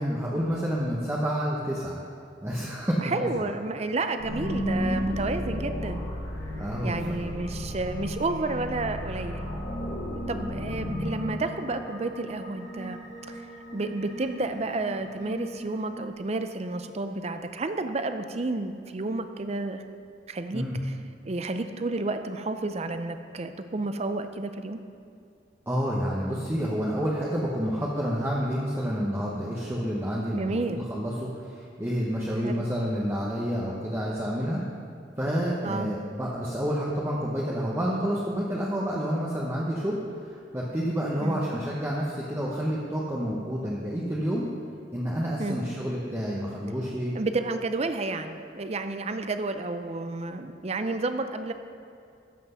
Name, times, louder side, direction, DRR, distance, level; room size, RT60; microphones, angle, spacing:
voice 1, 0.0-2.0 2.4-3.5 6.6-7.0 20.5-20.8 25.7-30.6 30.9-34.6 35.2-44.5 44.9-47.1, equal, 15° right, -5 dB, 0.9 m, -29 dB
voice 2, 3.0-6.0 6.8-9.5 10.3-13.0 13.3-13.4 13.7-19.8 20.3-20.9 21.2-24.8 30.3-30.8 32.4-32.6 35.6-35.9 41.2-41.4 45.4-45.6 47.1-51.5, right 2 dB, 35° right, 8 dB, 0.5 m, -31 dB
sound 1, 4.2-16.1, equal, 85° left, 2.9 m, -34 dB
13.5 x 5.9 x 5.5 m, 2.4 s
head